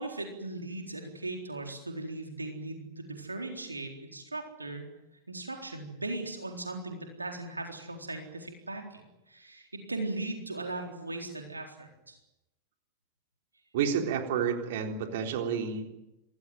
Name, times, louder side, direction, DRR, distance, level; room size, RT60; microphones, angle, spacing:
voice 1, 0.0-4.9 5.3-12.2, right 2 dB, 80° right, 3 dB, 3.9 m, -38 dB
voice 2, 13.7-15.9, right 7 dB, 55° right, 4 dB, 3.9 m, -30 dB
26.5 x 19.5 x 9.3 m, 0.96 s
figure-of-eight pair, 90°, 0 cm